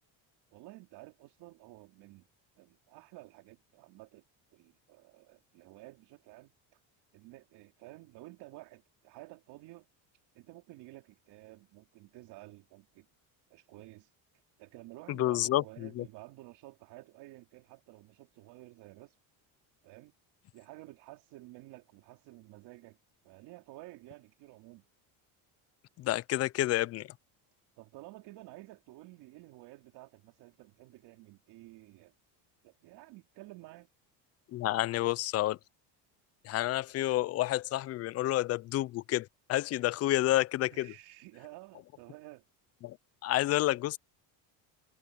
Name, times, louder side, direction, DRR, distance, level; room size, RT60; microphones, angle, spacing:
voice 1, 0.5-2.3 2.6-4.2 4.5-6.8 7.1-9.9 10.3-13.1 13.5-19.2 19.8-20.1 20.5-23.0 23.2-24.8 27.8-32.1 32.6-33.9 40.7-42.5, right 19 dB, 70° right, 3.5 m, -52 dB
voice 2, 15.1-16.0 26.0-27.1 34.5-35.6 36.4-40.9 42.8-43.0 43.2-44.0, left 15 dB, 40° left, 0.4 m, -29 dB
cardioid pair, 145°, 41 cm